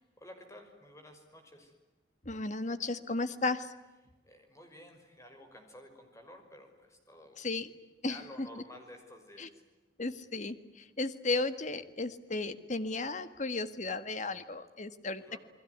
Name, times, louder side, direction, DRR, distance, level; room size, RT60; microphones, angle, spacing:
voice 1, 0.0-1.7 4.2-7.4 8.1-9.6 15.2-15.4, left 1 dB, 15° left, 5 dB, 5.6 m, -52 dB
voice 2, 2.2-3.7 7.4-7.7 8.0-8.2 9.4-9.5 10.0-15.2, left 3 dB, 45° left, 11 dB, 1.7 m, -34 dB
29.5 x 21.5 x 9.5 m, 1.1 s
head